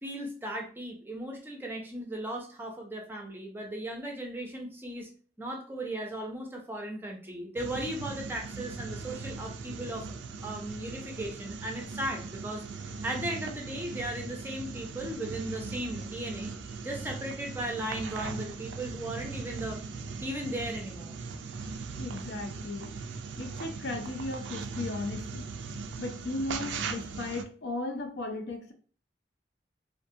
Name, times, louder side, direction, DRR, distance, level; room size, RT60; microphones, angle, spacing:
voice 1, 0.0-5.1 5.4-10.1 10.4-12.6 13.0-19.8 20.2-21.2, right 1 dB, 10° right, 1 dB, 0.5 m, -37 dB
sound 1, 7.6-27.4, right 4 dB, 80° right, 0.3 m, -39 dB
voice 2, 22.0-23.0 23.4-25.5 26.0-28.7, left 2 dB, 65° left, 5 dB, 0.5 m, -36 dB
2.5 x 2.2 x 2.6 m, 0.41 s
head